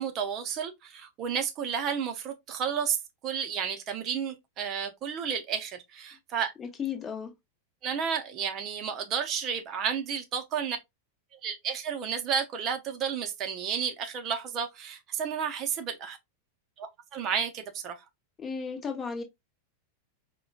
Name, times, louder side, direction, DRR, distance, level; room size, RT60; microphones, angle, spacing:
voice 1, 0.0-3.0 3.2-6.5 7.8-10.8 11.4-16.2 16.8-18.0, right 7 dB, 35° right, 0.6 m, -32 dB
voice 2, 6.6-7.3 18.4-19.2, left 6 dB, 20° left, 0.9 m, -34 dB
4.8 x 2.2 x 2.3 m
figure-of-eight pair, 90°, 0 cm